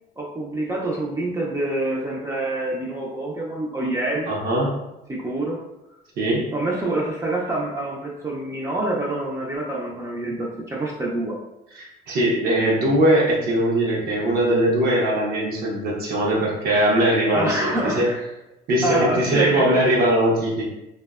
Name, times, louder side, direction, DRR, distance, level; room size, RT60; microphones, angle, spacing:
voice 1, 0.2-4.3 5.1-5.6 6.5-11.4 17.3-18.2 18.8-19.7, right 2 dB, 20° right, -3 dB, 0.3 m, -26 dB
voice 2, 4.3-4.8 6.2-6.5 11.7-18.1 18.7-20.6, right 1 dB, 70° right, -4 dB, 0.6 m, -21 dB
2.5 x 2.1 x 2.3 m, 0.93 s
cardioid pair, 110°, 17 cm